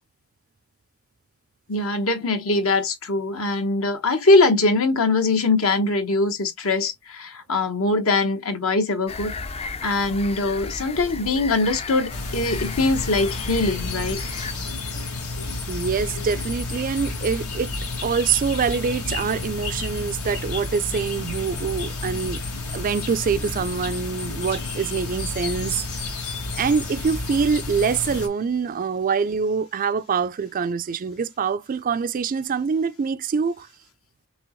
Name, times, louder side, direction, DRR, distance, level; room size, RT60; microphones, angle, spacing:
voice 1, 1.7-9.3 9.8-14.2, left 3 dB, 65° left, 1.1 m, -22 dB
sound 1, 9.1-14.5, left 3 dB, 25° left, 0.4 m, -34 dB
sound 2, 12.1-28.3, left 3 dB, 80° left, 2.1 m, -31 dB
voice 2, 15.7-17.7 18.0-22.4 22.7-25.8 26.5-33.7, right 6 dB, 40° right, 0.3 m, -25 dB
6.1 x 2.9 x 3.0 m
head